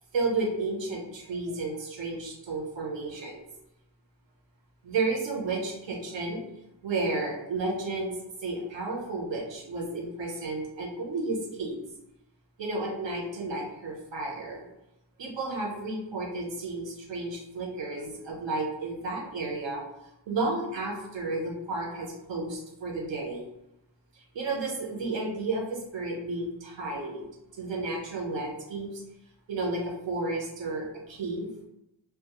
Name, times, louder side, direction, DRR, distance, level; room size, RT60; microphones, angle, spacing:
voice 1, 0.1-3.5 4.8-6.4 6.8-8.1 8.4-11.7 12.6-14.6 15.2-19.8 20.3-23.4 24.1-27.3 27.5-29.0 29.5-31.5, right 3 dB, 70° right, -1 dB, 0.8 m, -32 dB
2.3 x 2.0 x 2.9 m, 0.89 s
wide cardioid pair, 145°, 46 cm